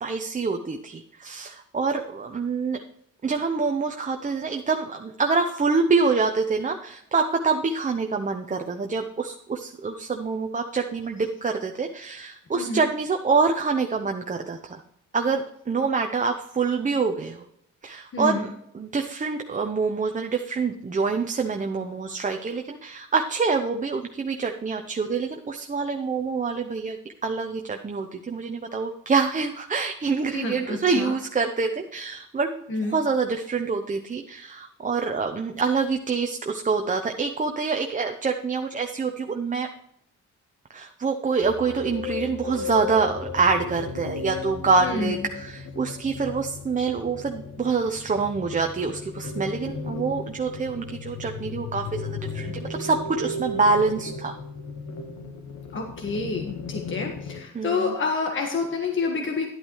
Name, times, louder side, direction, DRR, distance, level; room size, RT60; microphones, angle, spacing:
voice 1, 0.0-2.8 3.2-14.8 15.1-17.4 17.8-18.5 18.7-32.6 32.9-39.7 40.7-54.3 57.5-58.0, right 4 dB, 25° right, 4 dB, 0.8 m, -26 dB
voice 2, 18.1-18.4 30.3-31.1 32.7-33.0 44.8-45.2 55.7-59.5, left 4 dB, 40° left, 2 dB, 1.6 m, -28 dB
sound 1, 41.4-57.4, left 3 dB, 60° left, 1.4 m, -35 dB
11.0 x 8.7 x 3.2 m, 0.72 s
cardioid pair, 90°, 30 cm